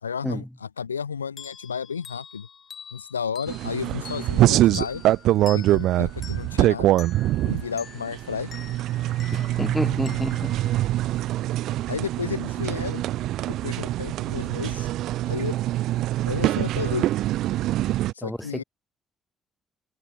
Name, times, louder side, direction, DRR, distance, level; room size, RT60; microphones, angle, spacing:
voice 1, 0.0-2.5 2.9-5.0 5.5-6.9 7.4-8.5 11.9-13.0 13.5-14.9 15.3-15.5 16.2-17.1 18.1-18.6, left 6 dB, 90° left, 1.1 m, -32 dB
sound 1, 1.4-11.6, left 7 dB, 50° left, 5.9 m, -45 dB
sound 2, 3.5-18.1, right 14 dB, 65° right, 0.5 m, -24 dB
voice 2, 9.3-10.6 18.2-18.6, equal, 5° left, 2.1 m, -29 dB
figure-of-eight pair, 40°, 0 cm